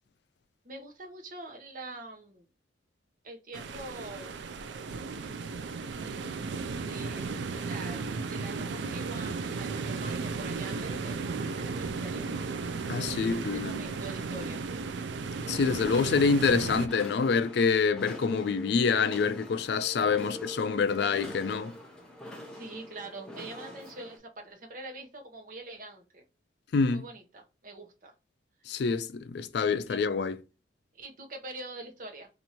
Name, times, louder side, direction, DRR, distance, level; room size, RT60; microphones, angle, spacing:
voice 1, 0.6-2.4 3.2-4.4 6.0-6.3 6.9-12.3 13.5-14.6 20.0-20.5 22.5-26.2 26.9-28.1 29.9-30.0 30.9-32.3, right 2 dB, 45° right, 0.9 m, -44 dB
sound 1, 3.5-16.9, right 4 dB, 65° right, 0.4 m, -35 dB
voice 2, 12.9-13.8 15.5-21.7 26.7-27.0 28.7-30.4, left 5 dB, 60° left, 0.3 m, -26 dB
sound 2, 15.4-24.2, left 1 dB, 5° left, 0.6 m, -44 dB
2.9 x 2.6 x 4.3 m
head